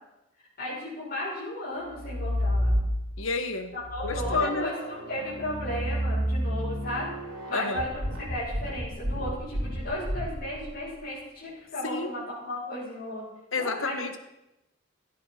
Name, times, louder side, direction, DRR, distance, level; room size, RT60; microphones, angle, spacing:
voice 1, 0.6-2.8 3.7-7.1 7.5-13.2 13.5-14.0, left 1 dB, 45° left, -11 dB, 6.8 m, -35 dB
sound 1, 1.9-3.3 3.8-10.8, equal, 75° right, 3.7 m, -30 dB
voice 2, 3.2-3.7 4.0-4.7 7.5-7.9 11.8-12.1 13.5-14.2, left 3 dB, 85° left, 8 dB, 1.5 m, -30 dB
15.5 x 10.0 x 5.8 m, 0.94 s
head